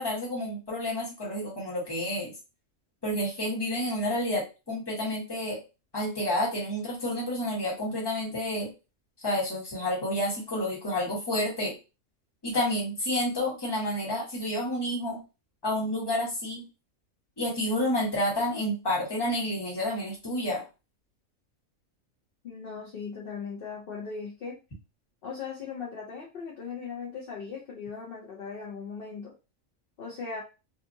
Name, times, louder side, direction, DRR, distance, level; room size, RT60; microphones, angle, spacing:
voice 1, 0.0-2.3 3.0-5.6 5.9-8.7 9.2-11.7 12.4-15.2 15.6-16.7 17.4-20.6, left 1 dB, 20° left, -4 dB, 1.1 m, -29 dB
voice 2, 22.4-24.6 25.2-29.3 30.0-30.4, left 5 dB, 55° left, -2 dB, 0.7 m, -38 dB
2.8 x 2.4 x 2.6 m, 0.29 s
omnidirectional pair, 1.4 m